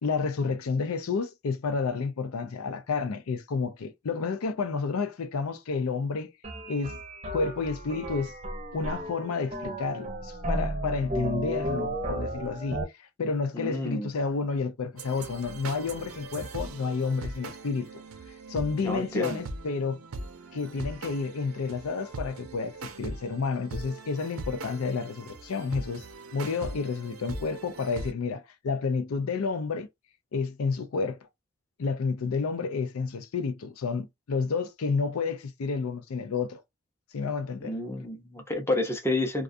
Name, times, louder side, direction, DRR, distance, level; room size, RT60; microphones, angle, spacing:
voice 1, 0.0-6.3 6.7-7.0 7.3-8.3 8.7-17.9 18.5-20.0 20.5-26.0 26.3-29.9 30.3-31.2 31.8-36.6 37.1-37.7, left 4 dB, 85° left, 0.5 m, -30 dB
sound 1, 6.4-12.8, right 1 dB, 30° right, 0.6 m, -34 dB
voice 2, 13.5-14.1 18.8-19.5 37.6-39.4, left 1 dB, 10° left, 0.6 m, -30 dB
sound 2, 15.0-28.1, right 2 dB, 80° right, 0.5 m, -41 dB
2.4 x 2.3 x 2.5 m
head